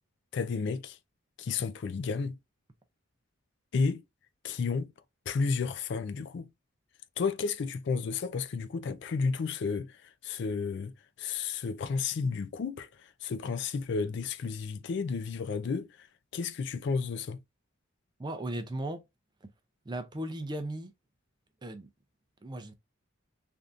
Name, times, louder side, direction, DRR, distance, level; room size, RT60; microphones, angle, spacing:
voice 1, 0.3-1.0 1.4-2.4 3.7-4.0 4.4-4.9 5.3-6.5 7.2-9.9 10.2-10.9 11.2-12.9 13.2-15.9 16.3-17.4, left 5 dB, 55° left, 0.3 m, -32 dB
voice 2, 18.2-19.0 19.9-20.9 21.6-21.9 22.4-22.7, right 1 dB, 20° right, 0.4 m, -36 dB
3.4 x 2.6 x 2.4 m
head